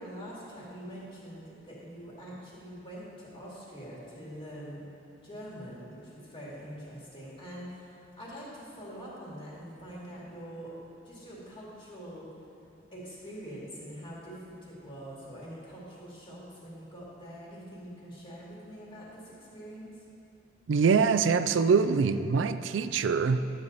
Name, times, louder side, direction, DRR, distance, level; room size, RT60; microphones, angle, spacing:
voice 1, 0.0-4.8 5.2-10.7 11.0-12.3 12.9-19.9, equal, 30° left, -7 dB, 2.6 m, -44 dB
voice 2, 20.7-23.4, right 5 dB, 85° right, 11 dB, 0.4 m, -24 dB
12.5 x 8.2 x 4.0 m, 3.0 s
head